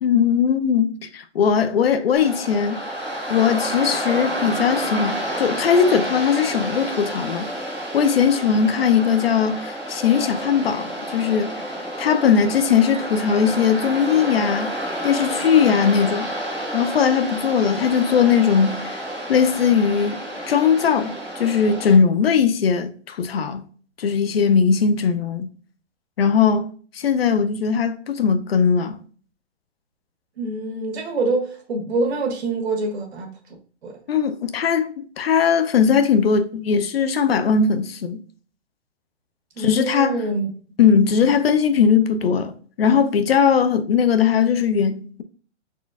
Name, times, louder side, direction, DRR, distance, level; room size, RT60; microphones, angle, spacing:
voice 1, 0.0-2.8 3.3-7.5 7.9-11.6 12.0-14.7 15.0-16.3 16.7-19.0 19.3-20.2 20.5-23.6 24.0-25.5 26.2-29.0 34.1-38.2 39.6-40.2 40.8-45.2, left 6 dB, 60° left, 0.5 m, -19 dB
Waves surf, 2.2-21.9, equal, 5° right, 0.5 m, -29 dB
voice 2, 30.4-33.3 33.8-34.0 39.6-40.5, right 2 dB, 65° right, 1.4 m, -25 dB
4.2 x 3.6 x 2.3 m
hypercardioid pair, 175°, 35 cm